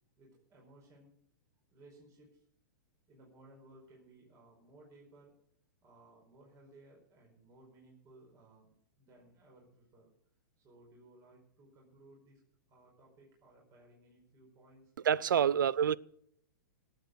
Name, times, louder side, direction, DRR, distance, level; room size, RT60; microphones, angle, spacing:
voice 1, 0.2-1.1 1.7-2.4 3.1-5.3 5.8-10.1 10.6-12.4 12.7-14.9, right 2 dB, 30° right, 5.0 m, -60 dB
voice 2, 15.0-16.0, right 8 dB, 80° right, 0.5 m, -27 dB
18.0 x 8.2 x 6.8 m
hypercardioid pair, 125°, 11 cm